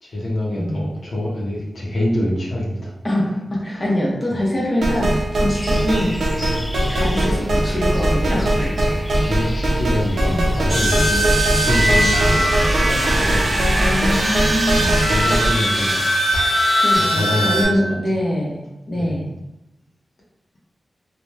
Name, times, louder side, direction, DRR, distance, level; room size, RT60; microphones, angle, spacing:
voice 1, 0.0-2.9 3.7-3.8 9.3-13.0 13.2-13.6 15.0-16.0 17.0-18.0 18.9-19.1, left 1 dB, 65° left, -5 dB, 0.7 m, -25 dB
voice 2, 0.6-0.9 3.0-6.1 6.9-8.9 10.3-10.4 13.8-15.0 16.8-18.6 18.9-19.2, left 1 dB, 30° left, -5 dB, 0.7 m, -23 dB
sound 1, 4.8-15.4, right 1 dB, 75° right, 0.4 m, -21 dB
sound 2, 5.5-13.9, equal, 5° left, 0.3 m, -28 dB
sound 3, 10.7-17.7, right 1 dB, 35° right, 0.9 m, -20 dB
2.9 x 2.1 x 2.3 m, 0.91 s
wide cardioid pair, 95°, 0 cm